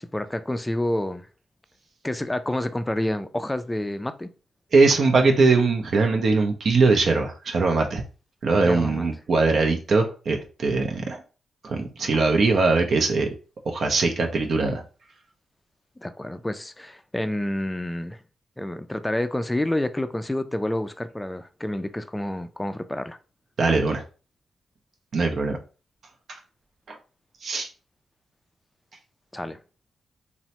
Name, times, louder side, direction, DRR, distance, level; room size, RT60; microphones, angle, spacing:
voice 1, 0.1-1.3 2.0-4.3 8.6-9.1 16.0-18.2 18.6-23.2 29.3-29.6, left 1 dB, 15° left, 0.3 m, -28 dB
voice 2, 4.7-8.0 8.4-11.2 11.6-13.3 13.6-14.8 23.6-24.0 25.1-25.6 26.9-27.0 27.4-27.7, right 3 dB, 60° right, 0.5 m, -21 dB
3.0 x 2.1 x 2.8 m
cardioid pair, 60°, 0 cm